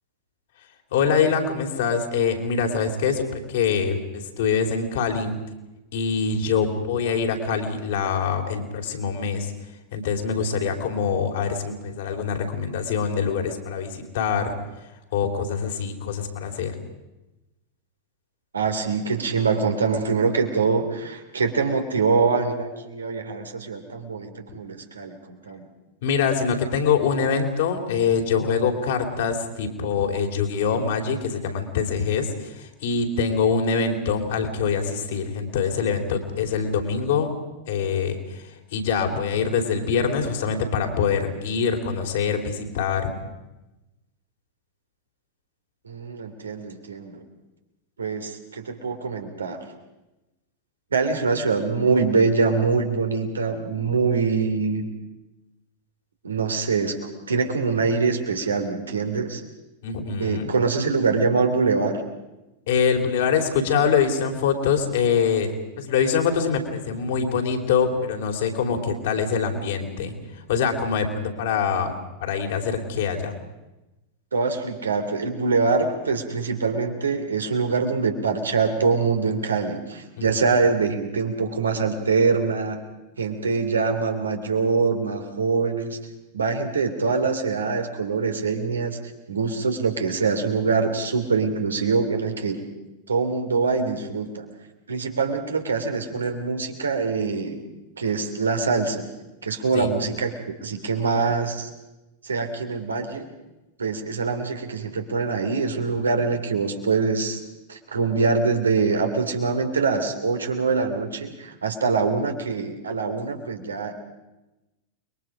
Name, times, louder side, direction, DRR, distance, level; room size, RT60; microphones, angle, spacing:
voice 1, 0.9-5.3 5.9-9.5 9.9-14.5 15.1-16.7 24.5-24.6 26.0-37.3 37.7-43.1 59.8-60.5 62.7-71.9 72.2-73.3 80.2-80.3 99.7-99.9, left 6 dB, 55° left, 4 dB, 3.4 m, -24 dB
voice 2, 18.5-25.7 45.8-47.2 48.0-49.6 50.9-54.9 56.2-57.0 57.3-59.4 60.2-62.0 74.3-82.8 83.2-86.0 86.3-89.0 89.3-92.6 93.1-94.4 94.9-97.6 98.0-99.0 99.4-100.3 100.6-101.7 102.2-103.3 103.8-107.4 107.7-114.0, right 4 dB, 70° right, 5 dB, 2.7 m, -24 dB
29.5 x 22.5 x 5.1 m, 1.0 s
figure-of-eight pair, 90°, 0 cm